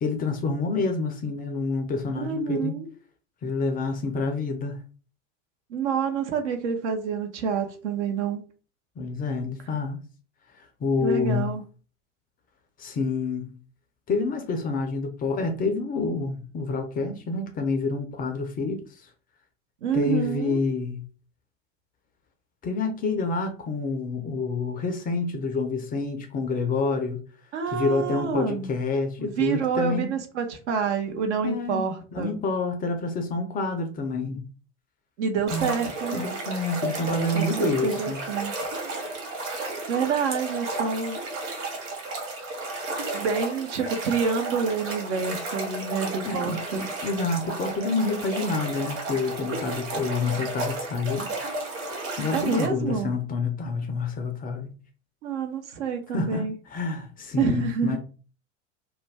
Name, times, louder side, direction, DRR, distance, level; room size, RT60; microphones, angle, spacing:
voice 1, 0.0-2.7 3.4-4.8 9.0-10.0 10.6-11.5 12.8-13.6 14.1-18.8 19.9-21.0 22.6-27.2 27.7-30.1 31.4-31.8 32.1-34.4 35.5-35.8 36.1-38.2 46.2-51.3 52.2-54.7 56.1-58.0, left 3 dB, 25° left, 0.4 m, -28 dB
voice 2, 2.2-2.9 5.7-8.4 11.0-11.6 19.8-20.6 27.5-28.7 29.2-32.3 35.2-36.3 37.3-38.7 39.9-41.2 43.1-46.9 52.3-53.1 55.2-56.5 57.4-58.0, right 6 dB, 60° right, 0.7 m, -28 dB
sound 1, 35.5-52.7, right 2 dB, 30° right, 1.0 m, -33 dB
2.4 x 2.2 x 3.3 m
figure-of-eight pair, 75°, 39 cm